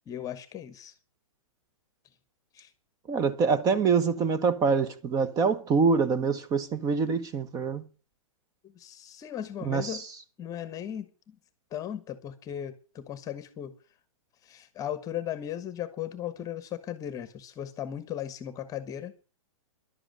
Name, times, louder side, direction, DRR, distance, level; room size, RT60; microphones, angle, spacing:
voice 1, 0.1-0.9 2.5-2.7 8.6-10.0 10.4-11.4 11.7-13.7 14.4-19.1, left 10 dB, 20° left, 1.2 m, -37 dB
voice 2, 3.1-7.8 9.6-10.1, right 5 dB, 20° right, 1.1 m, -25 dB
11.5 x 7.8 x 8.9 m
hypercardioid pair, 140°, 17 cm